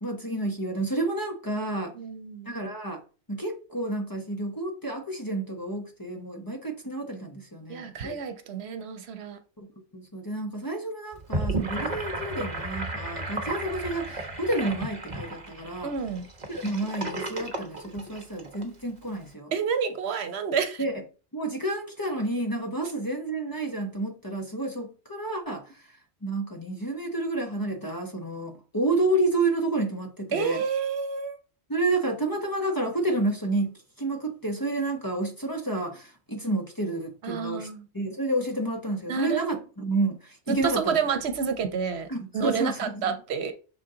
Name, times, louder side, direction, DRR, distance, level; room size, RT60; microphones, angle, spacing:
voice 1, 0.0-1.9 2.5-3.0 3.3-8.2 9.6-15.9 16.5-19.5 20.8-20.9 21.3-25.6 26.2-30.6 31.7-37.7 37.9-41.0 42.1-43.1, right 2 dB, 20° left, 0.9 m, -30 dB
voice 2, 1.9-2.6 7.7-9.4 15.8-16.2 19.5-20.8 30.3-31.4 37.2-37.9 39.1-39.5 40.5-42.1 42.3-43.5, right 6 dB, 80° right, 1.0 m, -29 dB
Gurgling / Sink (filling or washing), 11.1-18.6, right 2 dB, 45° right, 1.1 m, -33 dB
6.1 x 4.1 x 3.8 m
omnidirectional pair, 1.1 m